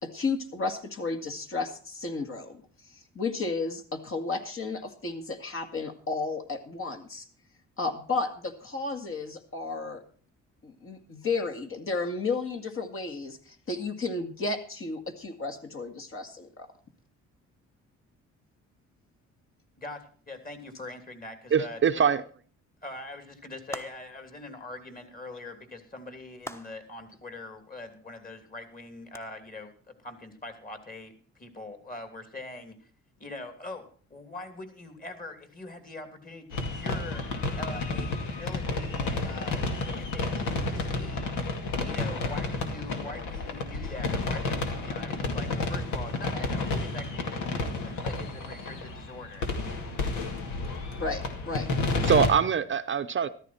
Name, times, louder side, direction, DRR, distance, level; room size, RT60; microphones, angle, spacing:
voice 1, 0.0-7.2 7.8-10.0 10.6-16.7 50.9-51.7, left 3 dB, 45° left, 2.1 m, -33 dB
voice 2, 19.8-21.8 22.8-32.9 33.2-33.8 34.1-37.2 37.6-41.5 41.8-49.4, left 2 dB, 30° left, 3.0 m, -43 dB
voice 3, 21.5-22.2 52.1-53.3, right 7 dB, 40° right, 0.7 m, -23 dB
sound 1, 23.7-24.3 26.4-27.0 29.1-29.2, left 1 dB, 10° left, 1.0 m, -41 dB
sound 2, 36.5-52.3, left 3 dB, 80° left, 2.4 m, -31 dB
14.0 x 13.0 x 4.4 m
cardioid pair, 90°, 30 cm